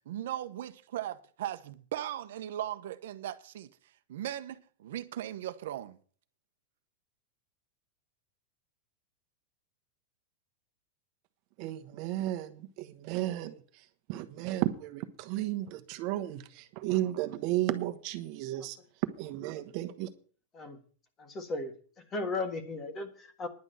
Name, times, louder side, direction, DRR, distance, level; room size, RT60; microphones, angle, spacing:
voice 1, 0.1-3.7 4.1-6.0, right 12 dB, 70° right, 0.9 m, -38 dB
voice 2, 11.6-13.6 14.1-18.8 19.2-20.1, right 14 dB, 40° right, 1.2 m, -33 dB
voice 3, 21.2-23.5, left 3 dB, 20° left, 1.6 m, -36 dB
11.0 x 6.2 x 9.0 m
supercardioid pair, 165°, 0 cm